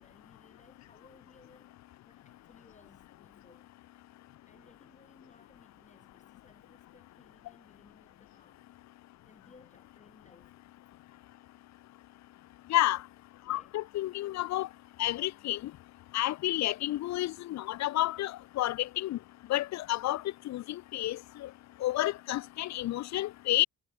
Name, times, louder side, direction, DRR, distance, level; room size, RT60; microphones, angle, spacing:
voice 1, 0.0-3.7 4.4-8.7 9.2-10.6 13.4-13.9, left 3 dB, 25° left, 5.1 m, -61 dB
voice 2, 12.7-13.0 13.5-14.7 15.0-15.7 16.1-19.2 19.5-21.5 21.8-23.7, left 15 dB, 65° left, 0.6 m, -30 dB
cardioid pair, 90°, 30 cm